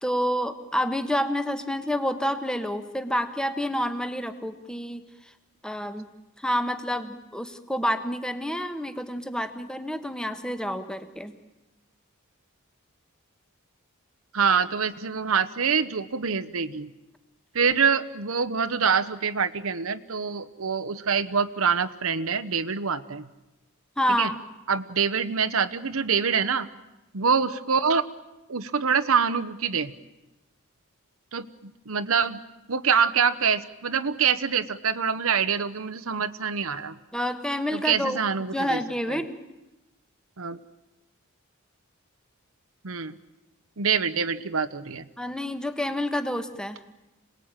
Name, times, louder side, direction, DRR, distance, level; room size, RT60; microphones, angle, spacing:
voice 1, 0.0-5.0 5.6-6.1 6.4-11.3 24.0-24.4 37.1-38.2 38.5-39.4 45.2-46.8, equal, 5° left, 9 dB, 1.3 m, -28 dB
voice 2, 14.3-16.9 17.5-23.3 24.1-24.3 24.7-26.7 27.1-28.0 28.5-29.9 31.3-31.5 31.9-32.4 32.7-36.9 37.7-38.8 39.1-39.2 40.4-40.6 42.8-43.1 43.8-45.0, right 6 dB, 75° right, 10 dB, 0.9 m, -25 dB
27.0 x 19.5 x 9.0 m, 1.0 s
head